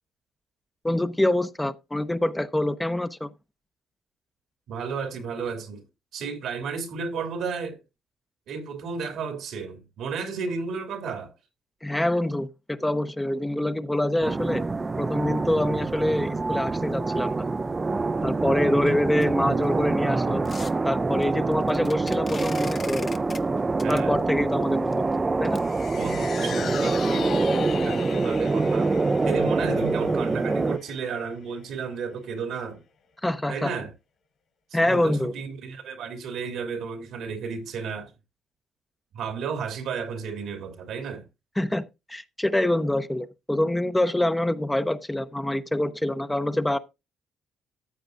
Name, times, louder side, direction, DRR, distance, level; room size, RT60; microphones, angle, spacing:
voice 1, 0.8-3.3 11.8-14.7 15.0-17.4 18.2-20.5 20.8-23.1 23.9-25.0 25.4-25.6 33.2-33.7 34.7-35.3 41.6-41.8 42.1-46.8, left 1 dB, 10° left, 0.7 m, -25 dB
voice 2, 4.7-5.8 6.1-7.8 8.5-11.3 18.7-19.0 23.8-24.2 25.9-27.3 27.8-28.9 29.2-32.8 33.5-33.9 34.7-38.1 39.1-41.3, right 5 dB, 80° right, 2.6 m, -33 dB
sound 1, 14.2-30.8, right 3 dB, 25° right, 0.5 m, -25 dB
sound 2, 19.1-26.5 27.1-27.2 27.5-27.6 27.9-28.1 28.4-28.5 28.9-29.2 29.4-29.5 30.0-30.1, left 4 dB, 35° left, 0.9 m, -44 dB
sound 3, 25.5-32.0 32.3-32.4, left 7 dB, 65° left, 2.9 m, -38 dB
14.0 x 7.9 x 2.5 m
cardioid pair, 90°, 0 cm